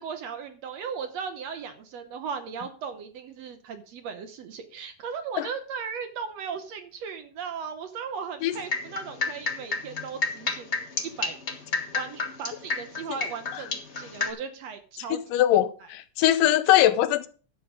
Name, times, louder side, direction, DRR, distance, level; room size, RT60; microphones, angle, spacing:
voice 1, 0.0-11.4 11.9-15.2, right 6 dB, 65° right, 1.9 m, -37 dB
sound 1, 8.5-14.3, left 4 dB, 55° left, 0.7 m, -30 dB
voice 2, 15.1-17.3, left 13 dB, 85° left, 2.4 m, -21 dB
12.0 x 7.7 x 5.1 m
omnidirectional pair, 3.7 m